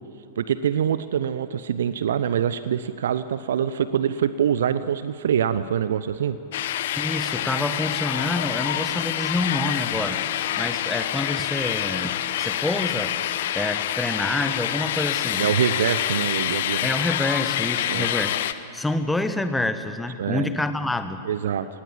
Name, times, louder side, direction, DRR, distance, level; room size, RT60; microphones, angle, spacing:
voice 1, 0.4-6.4 15.4-16.9 17.9-18.1 20.2-20.5 21.2-21.7, right 9 dB, 65° right, 14 dB, 0.7 m, -24 dB
sound 1, 6.5-18.5, left 11 dB, 55° left, 1.0 m, -27 dB
voice 2, 6.9-10.2 10.6-13.2 13.5-15.4 16.8-18.4 18.7-21.2, left 2 dB, 5° left, 10 dB, 1.4 m, -27 dB
29.0 x 18.5 x 7.5 m, 2.9 s
figure-of-eight pair, 95°, 0 cm